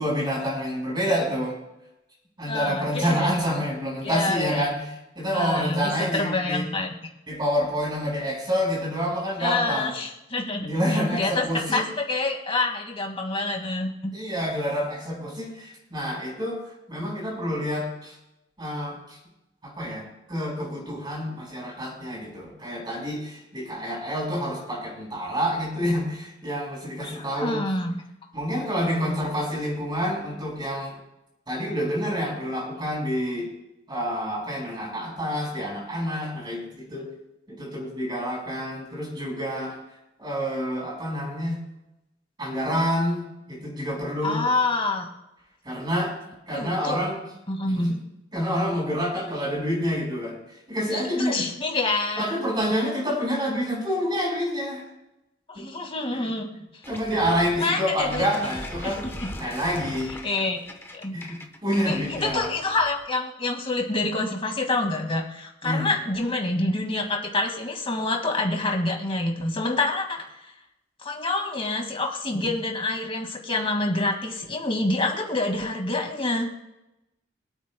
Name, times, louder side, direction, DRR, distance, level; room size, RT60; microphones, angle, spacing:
voice 1, 0.0-1.6 2.4-4.9 5.1-6.7 7.3-9.9 10.6-11.8 14.1-16.6 16.9-18.1 18.6-19.2 19.6-27.6 28.3-31.0 31.5-33.5 33.9-37.1 37.5-39.7 40.2-41.6 42.4-44.4 45.6-46.1 46.5-47.3 47.7-47.9 48.3-50.4 50.7-51.5 52.2-54.8 55.5-55.6 56.1-56.3 56.9-59.1 59.4-60.1 61.1-62.5 65.6-65.9 72.3-72.4, equal, 25° right, -2 dB, 4.9 m, -28 dB
voice 2, 2.5-3.4 4.0-4.7 5.3-6.9 9.4-10.7 10.9-14.1 27.0-28.0 28.8-29.2 44.2-45.1 46.5-47.0 47.5-47.9 50.9-52.3 55.5-56.5 57.6-58.5 58.8-59.3 60.2-60.6 60.9-61.1 61.8-70.2 70.4-70.5 71.0-76.5, left 2 dB, 30° left, 2 dB, 2.0 m, -27 dB
sound 1, 56.8-63.1, left 1 dB, 15° left, 1.0 m, -40 dB
26.0 x 8.8 x 2.2 m, 0.93 s
head